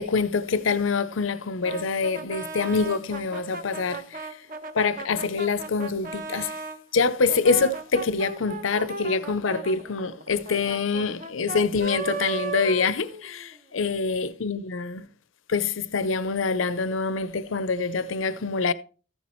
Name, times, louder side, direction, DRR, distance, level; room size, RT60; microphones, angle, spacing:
voice 1, 0.0-4.3 4.7-6.6 6.9-15.0 15.5-18.7, left 4 dB, 85° left, 0.7 m, -25 dB
Brass instrument, 1.6-6.8 7.3-13.6, right 4 dB, 45° right, 0.9 m, -36 dB
14.5 x 7.3 x 3.1 m
head